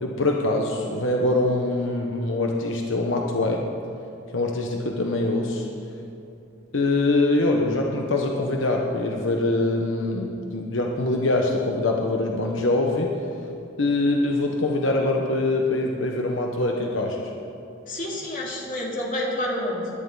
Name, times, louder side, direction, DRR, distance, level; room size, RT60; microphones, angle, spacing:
voice 1, 0.0-3.6 4.3-5.7 6.7-13.1 13.8-17.3, left 2 dB, 85° left, 1 dB, 1.1 m, -24 dB
voice 2, 17.9-19.9, left 1 dB, 45° left, -3 dB, 2.7 m, -28 dB
20.5 x 10.5 x 4.1 m, 2.8 s
head